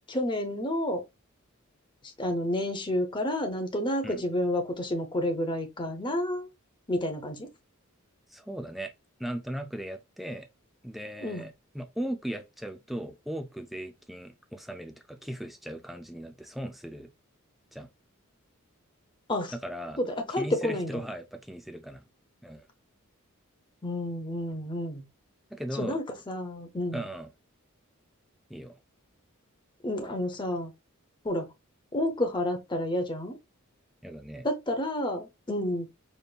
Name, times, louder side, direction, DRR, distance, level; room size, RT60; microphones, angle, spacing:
voice 1, 0.1-1.0 2.2-6.5 6.9-7.5 11.2-11.4 19.3-19.5 20.0-21.0 23.8-25.0 25.8-27.1 29.8-30.7 31.2-31.5 31.9-33.4 34.4-35.9, left 1 dB, 20° left, 0.8 m, -30 dB
voice 2, 8.3-8.9 9.2-10.5 10.8-17.1 17.7-17.9 19.5-20.0 20.4-22.0 22.4-22.6 25.5-26.0 26.9-27.3 28.5-28.8 34.0-34.5, right 1 dB, ahead, 0.4 m, -38 dB
5.2 x 2.7 x 2.4 m
head